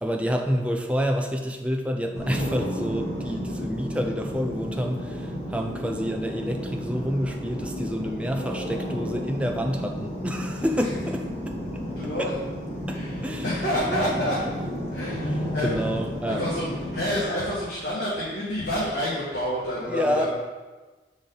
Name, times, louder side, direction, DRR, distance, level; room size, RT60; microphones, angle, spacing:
voice 1, 0.0-11.6 12.2-12.3 12.9-13.5 13.9-14.5 15.6-16.5 19.8-20.3, equal, 5° right, 3 dB, 0.4 m, -28 dB
sound 1, 2.1-17.1, equal, 35° left, 2.1 m, -32 dB
voice 2, 11.9-12.3 12.9-14.4 14.9-15.8 16.3-20.3, equal, 75° left, -8 dB, 1.7 m, -28 dB
6.6 x 5.1 x 3.9 m, 1.3 s
head